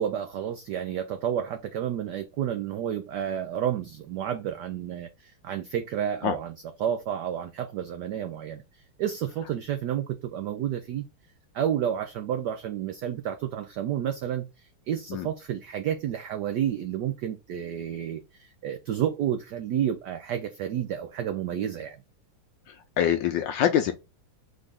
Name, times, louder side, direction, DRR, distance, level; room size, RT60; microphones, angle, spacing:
voice 1, 0.0-8.6 9.0-11.0 11.5-22.0, right 10 dB, 85° right, 0.9 m, -30 dB
voice 2, 23.0-23.9, left 10 dB, 75° left, 1.1 m, -24 dB
3.8 x 3.4 x 3.5 m
omnidirectional pair, 2.4 m